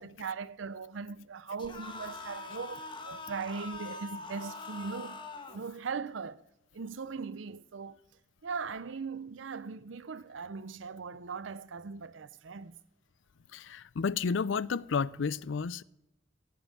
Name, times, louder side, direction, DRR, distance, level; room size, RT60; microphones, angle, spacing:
voice 1, 0.0-6.4 6.7-8.0 8.4-12.8, right 5 dB, 75° right, 0.6 m, -39 dB
sound 1, 1.6-5.6, left 3 dB, 25° left, 1.1 m, -43 dB
voice 2, 13.5-15.8, left 5 dB, 75° left, 0.5 m, -31 dB
16.5 x 5.5 x 9.0 m
head